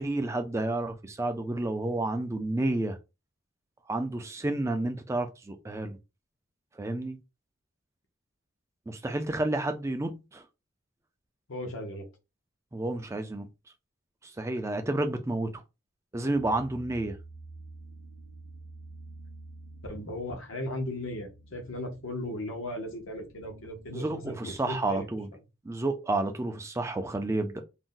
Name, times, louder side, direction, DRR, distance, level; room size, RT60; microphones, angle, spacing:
voice 1, 0.0-3.0 3.9-6.0 6.8-7.2 8.9-10.4 12.7-13.5 14.2-15.6 16.1-17.2 23.9-25.3 25.6-27.5, right 2 dB, 15° right, 0.3 m, -30 dB
voice 2, 11.5-12.0 19.8-25.1, left 1 dB, 75° left, 0.8 m, -36 dB
sound 1, 16.3-23.9, right 2 dB, 85° right, 0.4 m, -49 dB
2.6 x 2.1 x 3.7 m
head